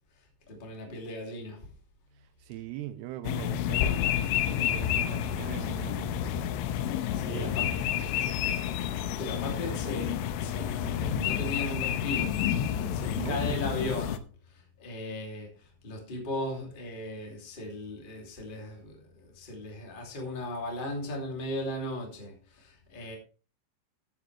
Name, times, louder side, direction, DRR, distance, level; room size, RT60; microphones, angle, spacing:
voice 1, 0.5-1.7 7.1-8.0 9.2-12.4 12.7-23.1, left 1 dB, 15° left, 1.8 m, -37 dB
voice 2, 2.2-4.2 4.5-6.3 7.2-7.9 9.6-9.8 13.2-13.6, right 14 dB, 80° right, 2.4 m, -41 dB
sound 1, 3.2-14.2, left 10 dB, 90° left, 3.1 m, -30 dB
13.0 x 8.7 x 3.3 m
omnidirectional pair, 5.4 m